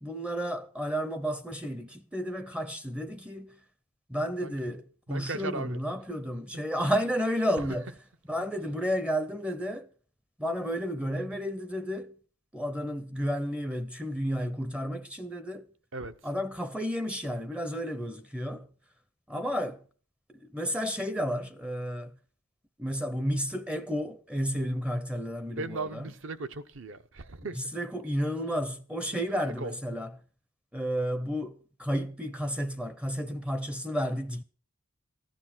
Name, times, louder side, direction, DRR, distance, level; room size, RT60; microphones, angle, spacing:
voice 1, 0.0-3.5 4.1-7.9 8.3-9.9 10.4-12.1 12.5-15.7 16.2-18.7 19.3-19.8 20.4-22.1 22.8-26.0 27.6-30.1 30.7-34.4, equal, 5° right, 0.5 m, -32 dB
voice 2, 5.1-5.8 7.6-7.7 15.9-16.1 25.6-27.7 29.4-29.8, right 3 dB, 60° right, 0.8 m, -37 dB
14.5 x 10.0 x 5.9 m
head